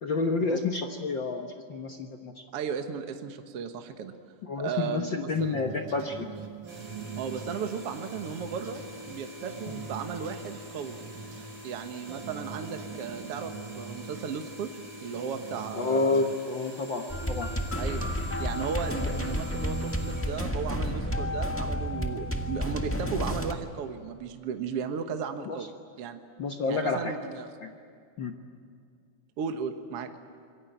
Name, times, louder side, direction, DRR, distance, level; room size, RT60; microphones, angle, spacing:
voice 1, 0.0-2.4 4.4-6.3 15.7-17.5 25.5-25.6 26.4-27.1 27.6-27.7 28.2-28.4, left 3 dB, 55° left, 4 dB, 1.4 m, -29 dB
voice 2, 2.5-4.1 4.6-5.6 7.2-11.0 11.6-14.7 15.0-16.3 17.8-18.0 18.4-25.7 26.0-26.2 26.7-27.5 29.4-30.1, right 6 dB, 55° right, 6 dB, 2.0 m, -35 dB
sound 1, 5.3-16.3, right 6 dB, 80° right, 3.0 m, -44 dB
sound 2, 6.7-21.9, left 1 dB, 20° right, 3.7 m, -46 dB
sound 3, 17.1-23.5, equal, 10° left, 0.6 m, -31 dB
26.5 x 22.5 x 9.2 m, 2.2 s
omnidirectional pair, 3.6 m